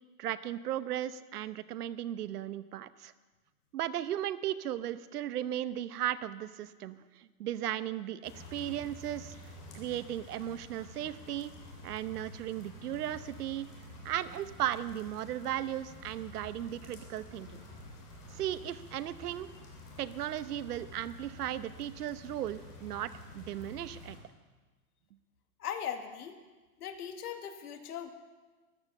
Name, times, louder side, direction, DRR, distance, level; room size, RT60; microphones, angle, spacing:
voice 1, 0.2-3.1 3.7-9.3 9.7-11.5 11.8-13.7 14.0-17.6 18.3-19.5 20.0-24.2, right 12 dB, 75° right, 14 dB, 0.9 m, -36 dB
sound 1, 8.2-24.2, left 1 dB, 25° left, 3.5 m, -49 dB
voice 2, 25.6-26.3 26.8-28.1, left 9 dB, 75° left, 5 dB, 1.9 m, -39 dB
14.0 x 12.0 x 7.1 m, 1.3 s
supercardioid pair, 175°, 46 cm